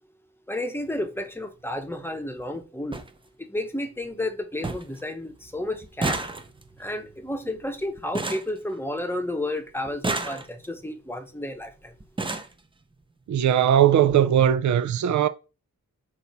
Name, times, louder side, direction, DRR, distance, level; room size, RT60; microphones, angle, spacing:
voice 1, 0.5-3.0 3.5-6.2 6.8-11.9, left 1 dB, 5° left, 0.8 m, -31 dB
sound 1, 0.8-1.0 2.2-2.3 2.5-2.6 2.9-3.1 3.6-4.0 4.3-4.4 4.6-5.0 5.3-9.3 9.8-10.8 11.6-11.7 12.0-12.6 13.5-13.6 14.0-14.2 14.4-14.6, right 2 dB, 15° right, 0.5 m, -32 dB
voice 2, 13.3-15.3, right 10 dB, 65° right, 0.4 m, -19 dB
6.3 x 4.1 x 4.1 m
wide cardioid pair, 155°, 31 cm